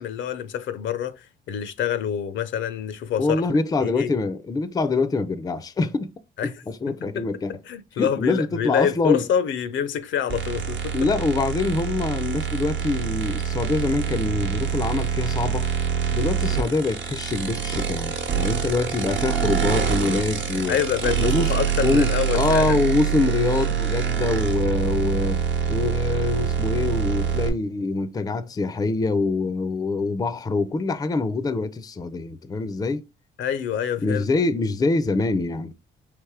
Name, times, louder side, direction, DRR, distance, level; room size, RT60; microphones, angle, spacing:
voice 1, 0.0-3.4 3.8-4.1 6.4-6.5 6.9-7.3 7.7-10.9 20.7-22.8 33.4-34.2, left 9 dB, 70° left, 0.6 m, -26 dB
voice 2, 3.2-6.1 6.7-7.5 8.0-9.2 10.9-15.7 16.1-20.8 21.2-21.5 21.8-25.4 25.7-33.0 34.0-35.7, left 3 dB, 20° left, 0.4 m, -24 dB
sound 1, 10.3-27.5, right 8 dB, 70° right, 1.0 m, -25 dB
3.3 x 3.0 x 4.6 m
cardioid pair, 90°, 20 cm